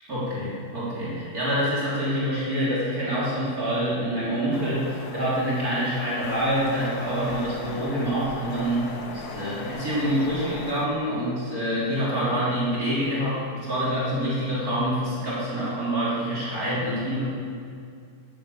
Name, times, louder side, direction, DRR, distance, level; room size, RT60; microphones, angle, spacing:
voice 1, 0.1-17.2, equal, 60° right, -8 dB, 4.0 m, -26 dB
sound 1, 4.5-10.9, left 3 dB, 70° left, 1.7 m, -38 dB
13.5 x 9.0 x 8.6 m, 2.3 s
omnidirectional pair, 1.8 m